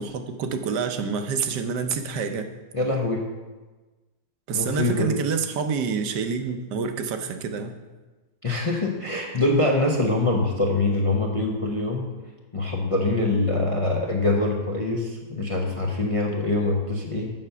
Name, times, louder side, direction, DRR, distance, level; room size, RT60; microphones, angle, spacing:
voice 1, 0.0-2.5 4.5-7.7, right 5 dB, 85° right, 7 dB, 1.4 m, -27 dB
voice 2, 2.7-3.2 4.5-5.2 8.4-12.1 12.5-17.3, left 2 dB, 35° left, -1 dB, 0.5 m, -24 dB
7.3 x 5.7 x 6.7 m, 1.2 s
omnidirectional pair, 1.8 m